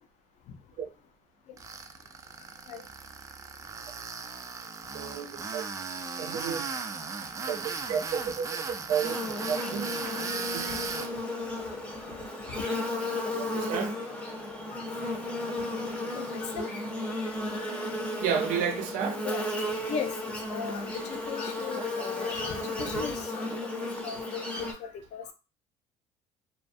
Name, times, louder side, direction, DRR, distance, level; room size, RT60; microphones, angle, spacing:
Tools, 1.6-11.1, right 4 dB, 25° right, 0.4 m, -37 dB
voice 1, 4.9-5.7 6.2-6.7 7.5-9.2 9.5-9.9 10.5-10.6 13.3-14.0 18.2-19.2, right 8 dB, 70° right, 0.6 m, -31 dB
Buzz, 9.0-24.7, left 1 dB, 10° left, 0.7 m, -34 dB
voice 2, 12.8-13.3 13.6-13.7 14.7-15.1 16.1-16.7 17.1-17.8 19.2-19.4 19.9-25.3, left 6 dB, 60° left, 0.5 m, -39 dB
2.3 x 2.1 x 2.5 m
supercardioid pair, 95°, 14 cm